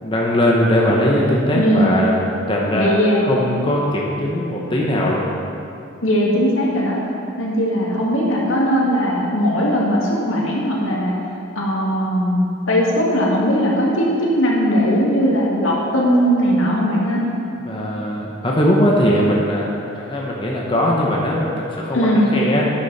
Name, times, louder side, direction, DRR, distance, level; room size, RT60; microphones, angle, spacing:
voice 1, 0.0-2.1 2.5-5.3 17.6-22.7, equal, 25° left, -3 dB, 1.1 m, -20 dB
voice 2, 1.6-1.9 2.7-3.2 6.0-7.0 7.4-11.1 11.6-17.2 21.9-22.3, equal, 80° left, -4 dB, 2.3 m, -18 dB
11.5 x 10.0 x 4.3 m, 2.6 s
head